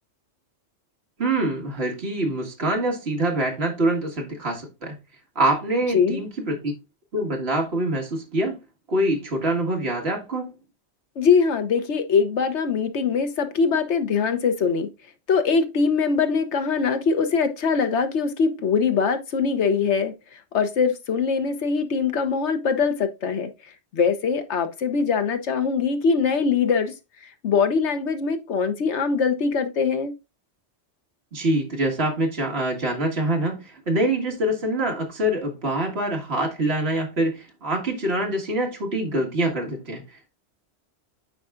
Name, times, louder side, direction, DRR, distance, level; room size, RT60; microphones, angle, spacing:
voice 1, 1.2-4.9 5.4-6.7 7.1-8.6 8.9-10.5 31.3-40.0, right 1 dB, 60° right, 1.9 m, -25 dB
voice 2, 11.2-14.9 15.3-23.5 23.9-26.9 27.4-30.1, left 5 dB, 75° left, 1.2 m, -22 dB
8.7 x 4.7 x 2.5 m
omnidirectional pair, 1.2 m